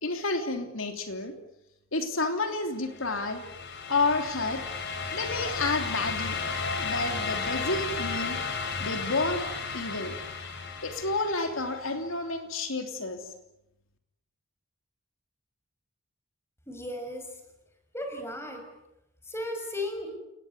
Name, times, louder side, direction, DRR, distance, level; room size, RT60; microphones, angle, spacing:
voice 1, 0.0-1.3 1.9-3.4 3.9-4.6 5.1-6.4 6.8-8.4 8.8-10.1 10.8-13.2, left 3 dB, 75° left, 5 dB, 3.1 m, -30 dB
sound 1, 2.9-11.8, left 5 dB, 55° left, 3.2 m, -34 dB
voice 2, 16.7-17.3 17.9-18.6 19.3-20.1, left 1 dB, 10° left, 5 dB, 5.9 m, -35 dB
29.5 x 20.0 x 9.7 m, 0.86 s
head